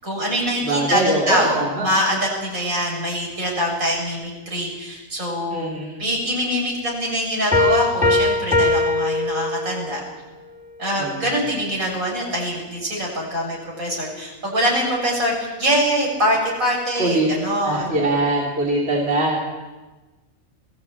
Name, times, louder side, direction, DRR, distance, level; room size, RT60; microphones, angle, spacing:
voice 1, 0.0-5.7 6.0-10.0 10.8-18.0, equal, 80° right, -1 dB, 7.1 m, -24 dB
voice 2, 0.7-1.9 5.5-6.0 11.0-11.3 17.0-17.3 17.6-19.4, right 2 dB, 50° right, -2 dB, 3.4 m, -22 dB
Piano, 7.5-10.0, left 2 dB, 5° right, 2.4 m, -20 dB
20.5 x 15.5 x 8.6 m, 1.2 s
omnidirectional pair, 1.4 m